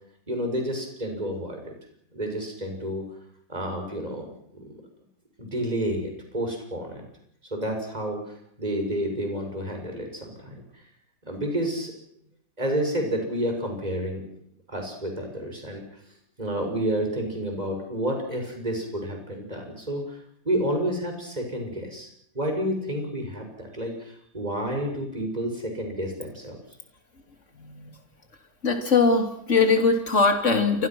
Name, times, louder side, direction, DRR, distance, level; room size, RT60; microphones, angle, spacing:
voice 1, 0.3-1.7 2.1-3.0 3.5-4.3 4.6-4.8 5.4-7.0 7.5-10.6 11.3-11.9 12.6-14.2 14.7-15.8 16.4-20.2 20.5-22.1 22.3-26.6, equal, 20° right, 3 dB, 7.0 m, -30 dB
voice 2, 27.6-27.9 28.6-30.9, left 4 dB, 40° left, 5 dB, 3.5 m, -21 dB
28.5 x 23.5 x 6.2 m, 0.69 s
omnidirectional pair, 1.9 m